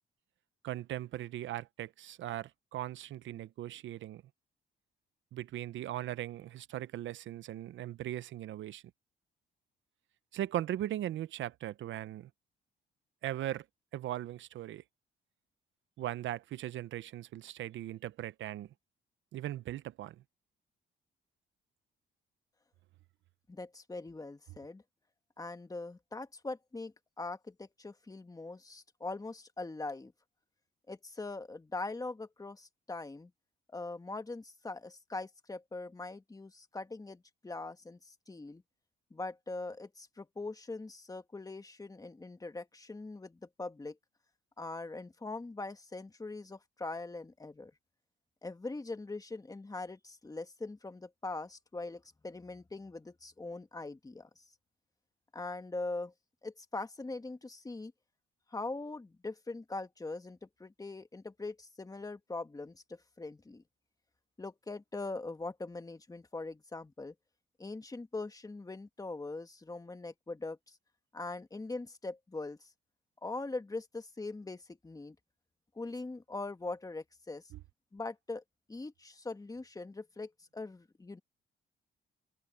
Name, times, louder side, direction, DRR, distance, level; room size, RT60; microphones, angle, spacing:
voice 1, 0.6-4.2 5.3-8.8 10.3-12.3 13.2-13.7 13.9-14.8 16.0-18.7 19.3-20.2 77.5-77.6, right 13 dB, 75° right, 0.8 m, -39 dB
voice 2, 23.5-24.8 25.4-30.1 30.9-33.3 33.7-38.6 39.1-44.0 44.6-47.7 48.4-54.4 55.3-56.1 56.4-57.9 58.5-63.6 64.4-67.1 67.6-70.8 71.1-72.6 73.2-75.2 75.8-77.4 77.9-78.4 78.7-81.2, left 3 dB, 20° left, 1.8 m, -42 dB
cardioid pair, 90°, 20 cm